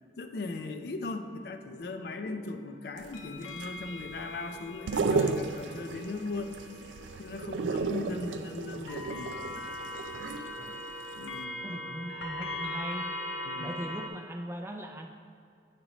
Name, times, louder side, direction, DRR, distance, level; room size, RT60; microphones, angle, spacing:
voice 1, 0.2-6.5 7.2-9.4 11.2-11.6 13.4-13.8, left 3 dB, 60° left, 7 dB, 0.4 m, -38 dB
sound 1, 1.8-14.1, left 1 dB, 85° left, 0.7 m, -41 dB
sound 2, 3.0-10.9 11.2-11.3, right 4 dB, 85° right, 0.4 m, -34 dB
voice 2, 11.6-13.1 13.6-15.1, right 1 dB, 15° right, 3 dB, 0.3 m, -39 dB
8.3 x 5.2 x 3.0 m, 2.3 s
head